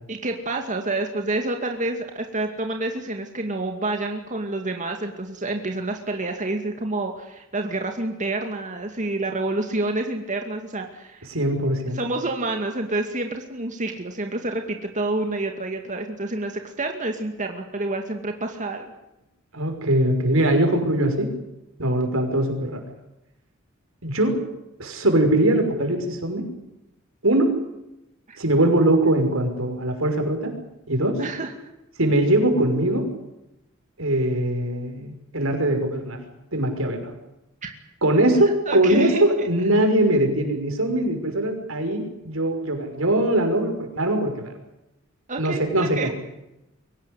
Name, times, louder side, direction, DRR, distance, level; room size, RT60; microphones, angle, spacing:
voice 1, 0.1-11.3 11.9-18.9 28.3-28.4 31.2-31.5 37.6-37.8 38.7-39.5 45.3-46.1, right 2 dB, 40° right, 4 dB, 2.4 m, -28 dB
voice 2, 11.3-12.0 19.5-21.3 21.8-22.8 24.0-24.4 24.8-26.5 27.2-27.6 28.4-30.5 30.9-31.2 32.0-33.1 34.0-36.2 36.5-37.1 38.0-44.5 45.4-46.1, right 1 dB, 85° right, 5 dB, 6.0 m, -21 dB
24.0 x 18.0 x 10.0 m, 0.90 s
head